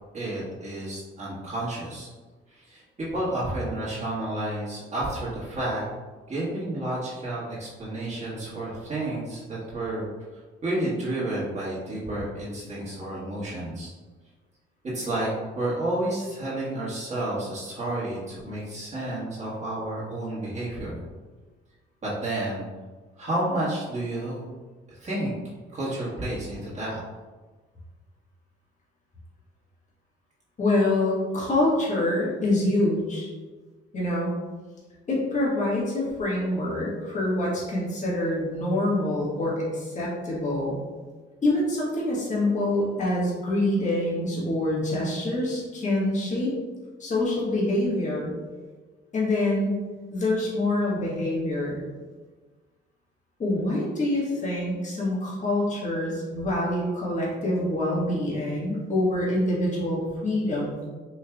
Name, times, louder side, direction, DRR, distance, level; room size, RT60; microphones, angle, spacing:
voice 1, 0.1-2.1 2.5-5.8 6.3-10.1 10.3-13.9 14.8-21.0 22.0-22.6 23.2-24.5 24.9-25.3 25.7-27.0, right 1 dB, 35° right, -8 dB, 1.4 m, -31 dB
voice 2, 30.6-33.3 33.9-34.3 35.1-40.8 41.4-46.5 47.0-48.3 49.1-49.8 50.1-51.8 53.4-60.8, left 1 dB, 35° left, -6 dB, 1.3 m, -26 dB
4.4 x 3.1 x 2.3 m, 1.3 s
cardioid pair, 90°, 20 cm